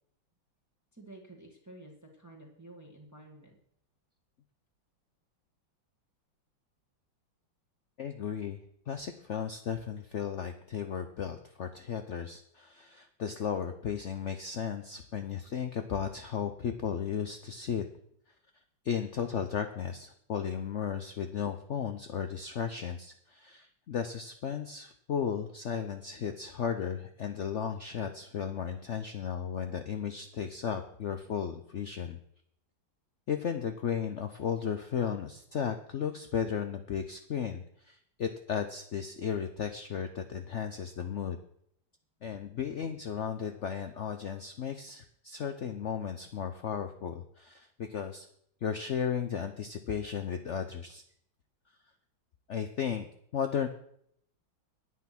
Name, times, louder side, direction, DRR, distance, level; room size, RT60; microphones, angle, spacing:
voice 1, 0.9-3.6, right 2 dB, 10° right, 0 dB, 1.6 m, -51 dB
voice 2, 8.0-17.8 18.8-32.2 33.3-41.4 42.2-48.3 48.6-51.0 52.5-53.1 53.3-53.7, left 7 dB, 75° left, 7 dB, 0.6 m, -35 dB
9.4 x 9.2 x 6.0 m, 0.70 s
omnidirectional pair, 2.2 m